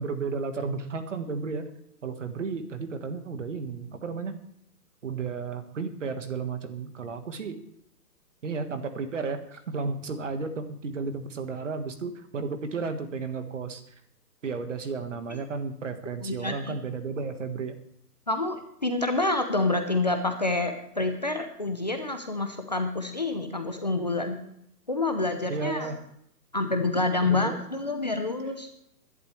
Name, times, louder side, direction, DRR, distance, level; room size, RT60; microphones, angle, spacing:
voice 1, 0.0-1.7 2.0-4.3 5.0-7.6 8.4-13.9 14.4-17.8 25.5-26.0 27.2-27.6, right 4 dB, 50° right, 8 dB, 1.6 m, -33 dB
voice 2, 16.2-16.8 18.3-24.4 24.9-25.9 26.5-28.7, left 2 dB, 25° left, 5 dB, 0.7 m, -28 dB
20.5 x 11.0 x 3.2 m, 0.73 s
hypercardioid pair, 180°, 48 cm